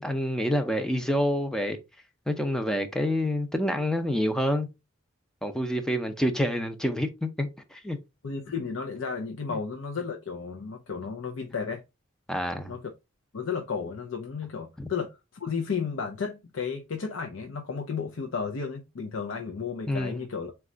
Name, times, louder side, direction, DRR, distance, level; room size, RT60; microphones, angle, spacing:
voice 1, 0.0-1.8 2.3-4.7 5.4-8.0 9.5-9.6 12.3-12.8 14.8-14.9 19.9-20.2, equal, 5° left, 0.5 m, -27 dB
voice 2, 8.2-11.8 12.7-12.8 13.3-20.5, left 5 dB, 85° left, 0.6 m, -33 dB
4.1 x 2.3 x 3.7 m
head